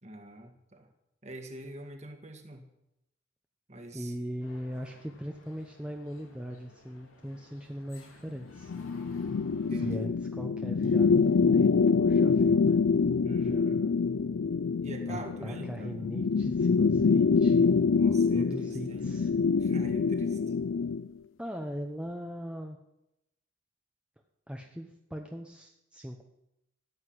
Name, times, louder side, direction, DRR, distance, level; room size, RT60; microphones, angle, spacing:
voice 1, 0.0-0.9 1.2-2.7 3.7-4.1 9.7-10.1 13.2-13.9 14.8-16.0 18.0-19.1 19.6-20.4, right 1 dB, 35° right, 5 dB, 2.0 m, -44 dB
voice 2, 3.9-8.7 9.8-12.8 13.4-13.9 15.1-17.7 18.3-19.3 21.4-22.8 24.5-26.2, equal, 5° right, 3 dB, 0.9 m, -40 dB
sound 1, 4.4-9.9, left 2 dB, 90° left, 2.9 m, -57 dB
sound 2, 8.6-21.1, left 5 dB, 70° left, 0.4 m, -25 dB
14.5 x 8.2 x 9.7 m, 0.86 s
head